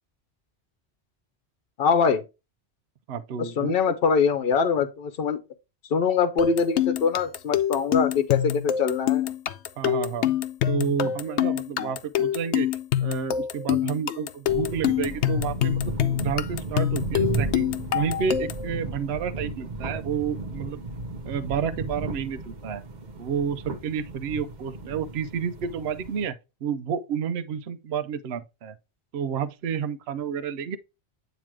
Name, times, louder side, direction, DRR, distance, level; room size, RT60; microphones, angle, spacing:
voice 1, 1.8-2.2 3.4-5.4 5.9-9.3, left 6 dB, 60° left, 1.0 m, -23 dB
voice 2, 3.1-3.8 9.8-10.3 10.7-12.7 13.0-17.7 17.9-20.8 21.3-22.8 23.2-26.3 26.6-28.8 29.1-30.8, right 7 dB, 70° right, 0.9 m, -30 dB
sound 1, 6.4-18.7, left 10 dB, 85° left, 0.9 m, -26 dB
sound 2, 14.5-26.2, right 3 dB, 45° right, 1.0 m, -34 dB
9.0 x 3.0 x 4.7 m
omnidirectional pair, 1.1 m